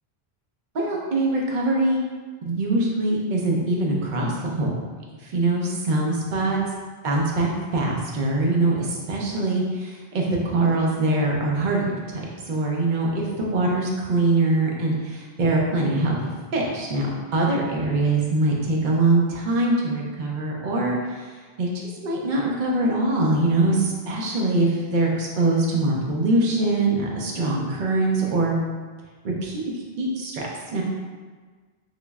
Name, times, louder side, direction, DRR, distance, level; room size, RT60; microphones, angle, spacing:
voice 1, 0.7-2.0 2.4-4.8 5.2-6.6 7.0-21.3 21.6-28.6 29.2-30.4 30.7-30.8, right 2 dB, 50° right, -2 dB, 0.7 m, -23 dB
3.9 x 3.0 x 2.3 m, 1.4 s
omnidirectional pair, 1.1 m